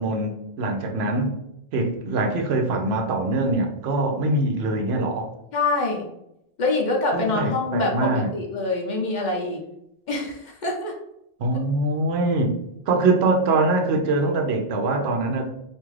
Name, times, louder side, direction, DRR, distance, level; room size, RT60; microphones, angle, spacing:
voice 1, 0.0-1.3 1.7-5.3 7.1-8.3 11.4-12.5 12.9-15.4, right 2 dB, 90° right, 3 dB, 0.8 m, -23 dB
voice 2, 5.5-6.0 6.6-9.6 10.1-10.9, left 3 dB, 55° left, 0 dB, 0.6 m, -25 dB
2.5 x 2.4 x 3.1 m, 0.82 s
omnidirectional pair, 1.0 m